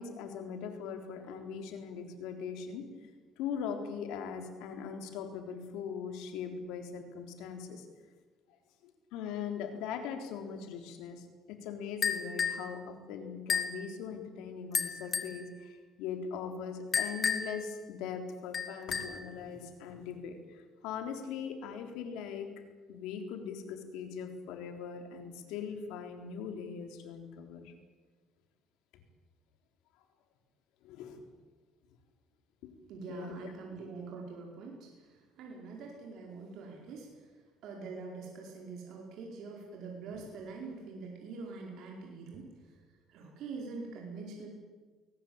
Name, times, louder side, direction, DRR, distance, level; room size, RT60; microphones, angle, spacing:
voice 1, 0.0-2.8 3.4-7.8 9.1-22.5 22.9-27.7 30.8-31.2 32.6-32.7 33.1-33.5, left 6 dB, 85° left, 6 dB, 3.8 m, -40 dB
sound 1, 12.0-12.7 13.5-13.8 14.7-15.4 16.9-17.6 18.5-19.3, left 6 dB, 35° left, 2.3 m, -32 dB
voice 2, 32.9-37.3 37.6-42.5 43.1-44.5, right 4 dB, 65° right, -1 dB, 5.0 m, -44 dB
22.0 x 19.0 x 8.9 m, 1.3 s
cardioid pair, 115°, 0 cm